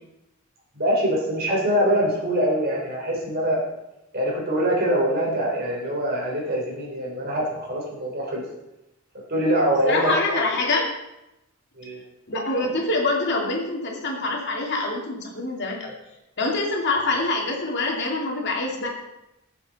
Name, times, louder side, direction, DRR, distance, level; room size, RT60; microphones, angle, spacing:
voice 1, 0.7-3.6 4.1-8.4 9.3-10.4 11.8-12.0, equal, 45° right, -2 dB, 3.7 m, -24 dB
voice 2, 9.9-10.9 12.3-15.9 16.4-18.9, left 2 dB, 50° left, 0 dB, 2.4 m, -25 dB
19.0 x 7.3 x 4.2 m, 0.91 s
head